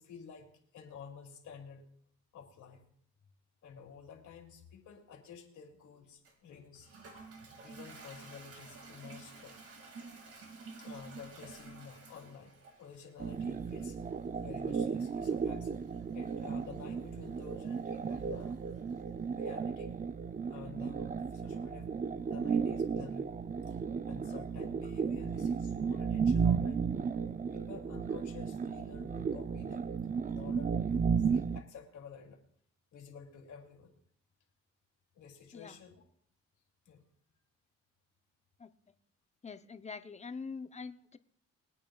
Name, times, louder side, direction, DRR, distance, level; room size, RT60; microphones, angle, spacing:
voice 1, 0.0-1.8 2.3-2.9 3.6-6.9 7.6-9.6 10.8-14.0 14.4-15.7 16.1-18.6 19.3-19.9 20.5-21.9 22.2-23.3 23.7-23.8 24.1-26.8 27.5-29.9 30.3-32.4 32.9-33.9 35.1-36.0 36.8-37.0, left 6 dB, 75° left, 1 dB, 2.7 m, -51 dB
Toilet flush, 6.2-19.0, right 4 dB, 50° right, 2.3 m, -53 dB
sound 1, 13.2-31.6, right 6 dB, 30° right, 0.5 m, -34 dB
voice 2, 39.4-41.2, left 5 dB, 20° left, 11 dB, 0.7 m, -44 dB
22.0 x 8.9 x 2.4 m, 0.65 s
cardioid pair, 90°, 30 cm